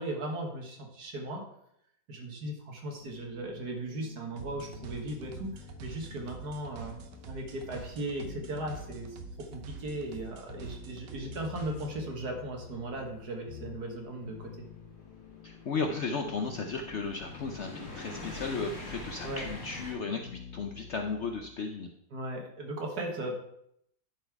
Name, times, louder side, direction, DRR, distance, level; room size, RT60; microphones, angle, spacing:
voice 1, 0.0-1.5 2.1-7.0 7.3-9.2 9.5-14.5 19.2-19.5 22.1-23.3, right 1 dB, 65° right, 1 dB, 2.0 m, -37 dB
sound 1, 3.0-21.5, left 9 dB, 85° left, 1.4 m, -50 dB
sound 2, 4.4-12.0, right 6 dB, 85° right, 1.5 m, -46 dB
sound 3, 12.9-19.9, left 1 dB, 45° left, 2.1 m, -45 dB
voice 2, 15.4-21.9, left 4 dB, 65° left, 4 dB, 0.7 m, -35 dB
10.5 x 4.3 x 4.6 m, 0.73 s
omnidirectional pair, 1.8 m